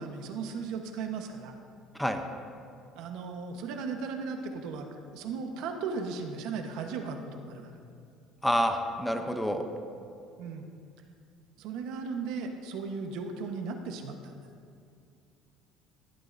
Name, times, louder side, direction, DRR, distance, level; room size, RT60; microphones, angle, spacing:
voice 1, 0.0-1.5 3.0-7.7 10.4-10.7 11.6-14.4, right 5 dB, 75° right, 4 dB, 1.1 m, -36 dB
voice 2, 8.4-9.7, equal, 5° left, 6 dB, 0.7 m, -28 dB
15.0 x 11.5 x 2.6 m, 2.4 s
cardioid pair, 125°, 0 cm